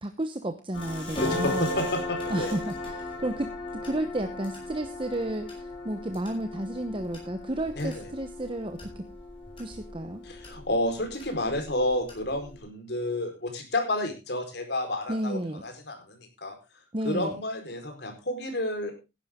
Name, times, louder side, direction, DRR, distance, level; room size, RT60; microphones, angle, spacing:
voice 1, 0.0-1.7 2.3-9.1 9.6-10.2 15.1-15.6 16.9-17.4, right 1 dB, 30° right, 7 dB, 1.0 m, -32 dB
sound 1, 0.7-12.6, left 1 dB, 30° left, 7.1 m, -37 dB
voice 2, 1.2-2.5 7.8-8.0 10.3-16.5 17.0-18.9, left 1 dB, 60° left, 5 dB, 4.5 m, -30 dB
15.5 x 11.5 x 3.7 m, 0.28 s
head